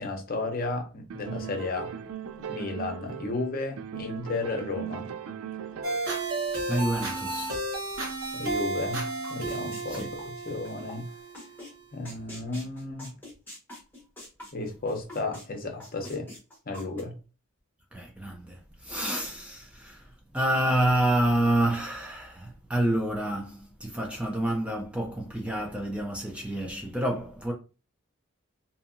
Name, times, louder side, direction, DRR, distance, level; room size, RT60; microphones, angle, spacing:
voice 1, 0.0-1.9 2.5-5.1 8.3-11.1 11.9-13.1 14.5-16.3 16.7-17.2, left 2 dB, 45° left, 0.7 m, -33 dB
sound 1, 1.1-3.4 3.8-6.2, right 9 dB, 85° right, 0.3 m, -38 dB
sound 2, 5.8-11.8, right 2 dB, 65° right, 1.2 m, -33 dB
voice 2, 6.7-7.6 9.9-10.1 17.9-27.5, right 1 dB, 5° right, 0.4 m, -28 dB
sound 3, 9.2-11.0 11.3-11.7 12.1-15.5 15.8-17.0, left 1 dB, 10° left, 1.0 m, -44 dB
2.7 x 2.6 x 2.5 m
head